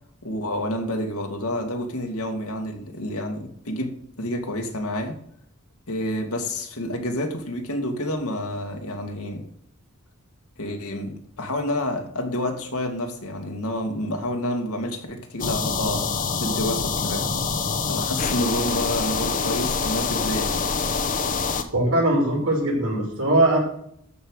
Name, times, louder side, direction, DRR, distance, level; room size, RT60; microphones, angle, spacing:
voice 1, 0.2-5.2 5.9-9.5 10.6-17.5 17.9-20.6, left 1 dB, 85° left, 3 dB, 2.3 m, -29 dB
sound 1, 15.4-21.6, left 5 dB, 40° left, 1.1 m, -25 dB
voice 2, 21.7-23.6, right 1 dB, 75° right, -2 dB, 5.7 m, -20 dB
13.5 x 5.7 x 6.5 m, 0.66 s
head